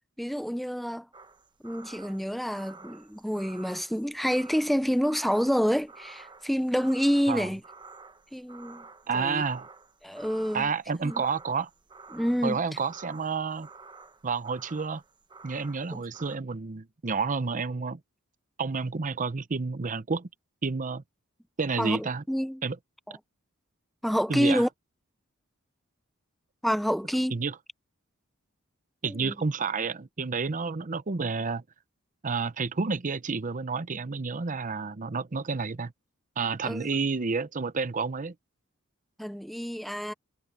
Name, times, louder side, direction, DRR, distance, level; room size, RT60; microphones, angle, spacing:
voice 1, 0.2-1.1 1.6-7.6 8.3-8.9 9.1-9.4 10.0-10.7 11.0-11.2 12.1-12.6 15.9-16.0 21.8-22.6 23.1-23.2 24.0-24.7 26.6-27.4 29.0-29.4 36.6-36.9 39.2-40.1, equal, ahead, 0.5 m, -28 dB
sound 1, 1.1-16.4, right 4 dB, 20° right, 1.0 m, -50 dB
voice 2, 9.1-9.7 10.5-11.7 12.4-13.7 14.2-15.0 15.4-18.0 18.6-20.3 20.6-21.0 21.6-22.2 22.6-22.8 24.3-24.6 27.3-27.5 29.0-31.6 32.2-35.9 36.4-38.3, right 4 dB, 40° right, 0.7 m, -30 dB
head